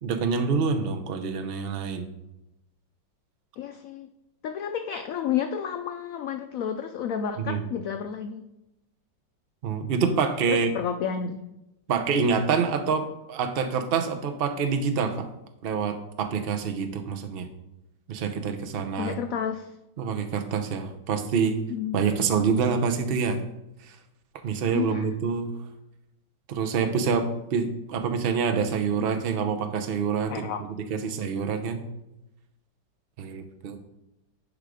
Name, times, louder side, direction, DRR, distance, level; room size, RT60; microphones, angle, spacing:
voice 1, 0.0-2.1 7.4-7.6 9.6-10.7 11.9-15.3 15.6-17.5 18.1-19.2 20.0-21.6 21.9-23.4 23.9-24.0 24.4-25.5 26.5-30.4 30.9-31.8 33.2-33.8, right 5 dB, 55° right, 6 dB, 0.6 m, -26 dB
voice 2, 3.6-4.1 4.4-8.4 10.5-11.4 19.0-19.7 21.7-22.0 24.7-25.1 30.3-30.6, left 8 dB, 85° left, 7 dB, 0.7 m, -31 dB
10.5 x 3.6 x 4.9 m, 0.90 s
omnidirectional pair, 2.0 m